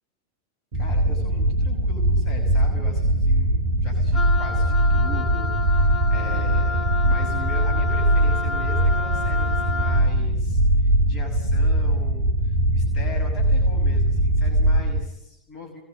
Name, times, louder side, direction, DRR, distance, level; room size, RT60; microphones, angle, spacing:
voice 1, 0.7-15.8, left 2 dB, 35° left, 3 dB, 6.5 m, -40 dB
sound 1, 0.7-15.1, right 1 dB, 55° right, 2.0 m, -21 dB
Wind instrument woodwind instrument, 4.1-10.1, left 4 dB, 20° left, 2.6 m, -30 dB
27.0 x 21.5 x 9.5 m, 0.86 s
figure-of-eight pair, 90°, 0 cm